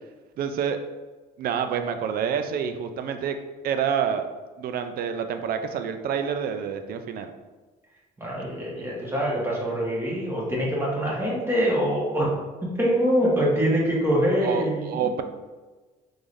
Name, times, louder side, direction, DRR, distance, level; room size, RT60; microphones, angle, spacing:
voice 1, 0.4-0.8 1.4-3.4 3.6-4.3 4.6-7.3 14.4-15.2, right 7 dB, 60° right, 8 dB, 0.4 m, -27 dB
voice 2, 8.2-12.3 12.6-15.1, equal, 15° right, -5 dB, 1.2 m, -24 dB
3.6 x 3.2 x 2.6 m, 1.3 s
cardioid pair, 110°, 17 cm